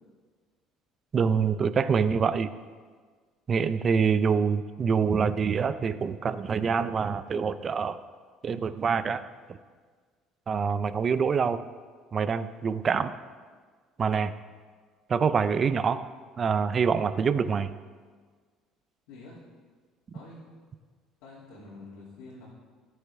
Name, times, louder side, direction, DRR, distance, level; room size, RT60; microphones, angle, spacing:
voice 1, 1.1-2.5 3.5-8.0 8.4-9.2 9.5-9.6 10.5-11.6 12.1-13.1 14.0-14.3 15.1-16.0 16.4-17.7, right 6 dB, 25° right, 13 dB, 0.4 m, -25 dB
voice 2, 19.1-19.4 20.1-20.4 21.2-22.5, left 2 dB, 90° left, -9 dB, 2.8 m, -47 dB
18.0 x 6.7 x 3.6 m, 1.5 s
cardioid pair, 180°, 0 cm